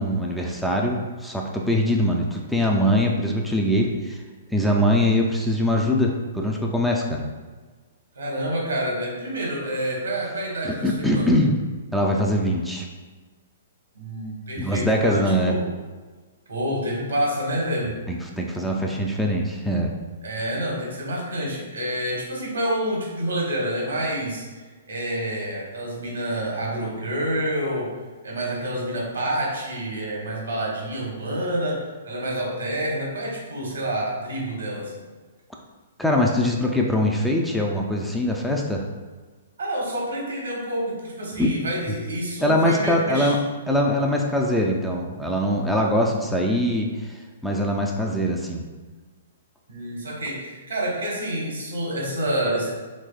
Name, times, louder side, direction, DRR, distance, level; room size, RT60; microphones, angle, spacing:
voice 1, 0.0-4.2 4.5-7.3 10.6-11.6 11.9-12.9 14.6-15.6 18.1-19.9 36.0-38.9 41.4-41.5 42.4-43.4 43.7-48.7, equal, ahead, -1 dB, 0.3 m, -22 dB
voice 2, 8.2-11.3 13.9-15.6 16.5-18.0 20.2-27.9 28.2-35.0 39.6-43.4 49.7-52.7, right 1 dB, 85° right, -3 dB, 1.0 m, -28 dB
3.3 x 3.0 x 2.3 m, 1.4 s
hypercardioid pair, 130°, 0 cm